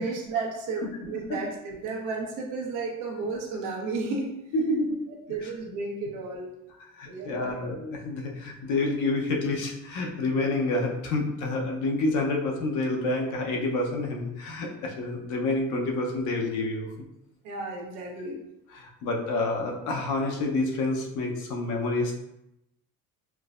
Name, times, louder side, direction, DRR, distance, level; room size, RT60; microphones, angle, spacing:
voice 1, 0.0-4.3 5.1-6.5 7.1-7.7 17.4-18.4, right 3 dB, 85° right, -1 dB, 0.9 m, -33 dB
voice 2, 4.5-5.0 5.4-5.5 6.9-16.9 18.7-22.1, left 2 dB, 75° left, 1 dB, 0.7 m, -28 dB
4.5 x 2.1 x 2.4 m, 0.84 s
cardioid pair, 120°, 31 cm